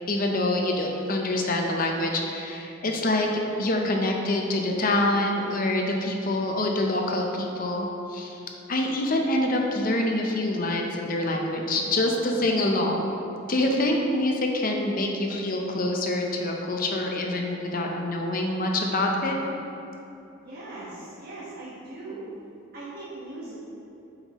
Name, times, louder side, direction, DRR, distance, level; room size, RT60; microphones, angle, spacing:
voice 1, 0.1-3.3 3.6-8.4 8.7-13.1 13.5-19.4, left 1 dB, 45° left, 1 dB, 0.7 m, -26 dB
voice 2, 20.4-22.3 22.7-23.5, right 2 dB, 45° right, -10 dB, 1.3 m, -39 dB
7.8 x 5.5 x 3.0 m, 3.0 s
head